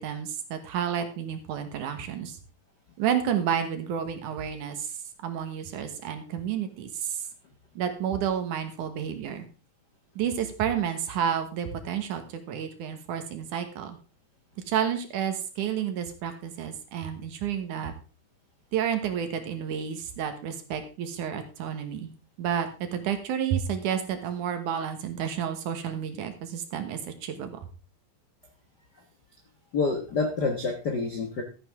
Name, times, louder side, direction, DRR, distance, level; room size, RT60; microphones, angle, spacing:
voice 1, 0.0-2.4 3.0-4.9 5.2-7.2 7.8-9.5 10.2-14.0 14.7-17.9 18.7-22.1 22.4-27.6, right 8 dB, 70° right, 8 dB, 2.6 m, -30 dB
voice 2, 29.7-31.4, left 4 dB, 60° left, 3 dB, 1.1 m, -27 dB
13.0 x 9.3 x 3.6 m, 0.33 s
omnidirectional pair, 3.9 m